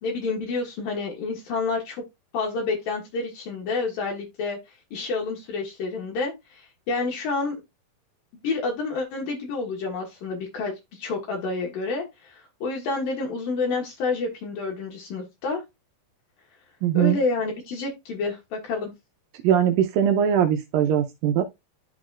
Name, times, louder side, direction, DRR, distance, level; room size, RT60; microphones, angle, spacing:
voice 1, 0.0-2.0 2.3-4.6 4.9-7.6 8.4-15.6 16.9-18.9, left 3 dB, 75° left, 3.1 m, -29 dB
voice 2, 16.8-17.2 19.4-21.4, right 9 dB, 80° right, 2.4 m, -21 dB
11.5 x 3.9 x 2.4 m
omnidirectional pair, 4.2 m